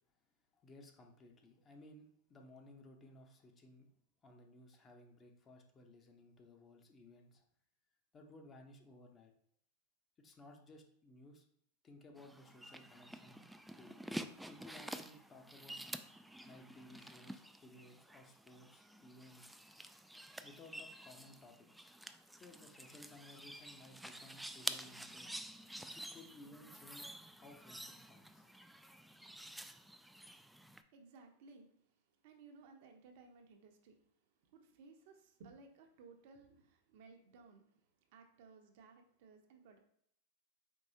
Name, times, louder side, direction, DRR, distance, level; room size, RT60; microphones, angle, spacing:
voice 1, 0.6-3.9 4.2-7.4 8.1-9.3 10.2-11.4 11.8-13.4 13.8-14.0 14.5-15.8 16.4-19.5 20.4-21.7 22.3-25.3 25.9-28.5, left 2 dB, 25° left, 3 dB, 0.8 m, -59 dB
sound 1, 12.2-30.8, right 1 dB, 5° right, 0.3 m, -49 dB
voice 2, 30.9-31.9 32.2-34.0 34.5-37.8 38.1-39.8, right 4 dB, 60° right, 4 dB, 0.7 m, -60 dB
4.6 x 3.0 x 2.7 m, 0.69 s
hypercardioid pair, 95°, 0 cm